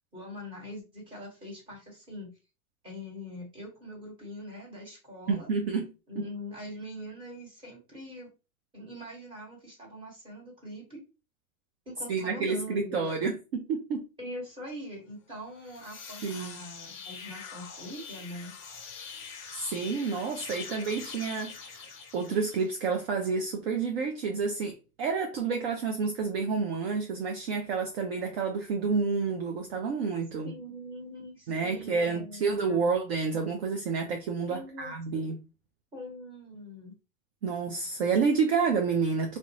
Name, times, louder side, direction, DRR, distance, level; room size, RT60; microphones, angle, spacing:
voice 1, 0.1-2.3 2.8-5.5 6.1-8.3 8.7-11.0 11.8-13.1 14.2-18.5 30.4-32.9 34.5-35.2 35.9-37.0, left 1 dB, 10° right, 1.3 m, -43 dB
voice 2, 5.3-6.3 12.1-14.1 16.2-16.6 19.5-30.5 31.5-35.4 37.4-39.4, right 5 dB, 45° right, 0.5 m, -29 dB
sound 1, 15.5-22.9, left 6 dB, 35° left, 0.6 m, -44 dB
2.4 x 2.2 x 2.8 m
hypercardioid pair, 120°, 45 cm